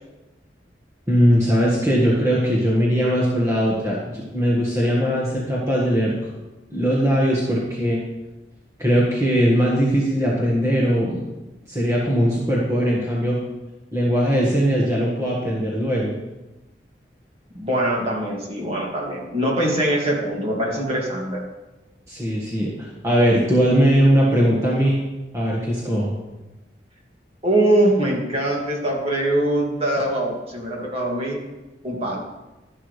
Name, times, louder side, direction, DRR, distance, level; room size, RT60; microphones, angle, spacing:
voice 1, 1.1-6.1 6.7-8.0 8.8-11.3 11.7-13.4 13.9-16.2 22.1-22.7 23.0-25.0 25.3-26.1, equal, 15° right, -6 dB, 1.6 m, -20 dB
voice 2, 17.5-21.4 27.4-31.4 31.8-32.2, right 1 dB, 35° right, -2 dB, 2.3 m, -22 dB
12.0 x 10.5 x 3.3 m, 1.0 s
head